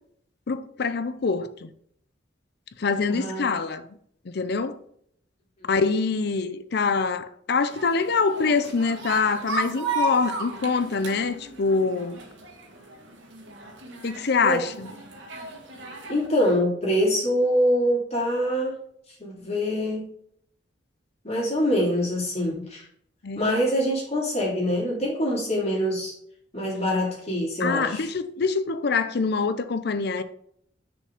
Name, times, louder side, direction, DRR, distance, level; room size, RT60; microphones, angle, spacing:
voice 1, 0.5-1.7 2.8-3.9 4.3-4.8 5.7-12.2 14.0-14.9 23.2-23.5 27.6-30.2, left 4 dB, 60° left, 0.6 m, -25 dB
voice 2, 3.1-3.5 14.4-14.6 16.1-18.8 19.2-20.1 21.2-22.8 23.3-26.1 26.5-28.1, equal, 35° left, 2.9 m, -24 dB
sound 1, 7.7-16.3, right 2 dB, 80° right, 1.6 m, -34 dB
6.6 x 5.1 x 3.7 m
head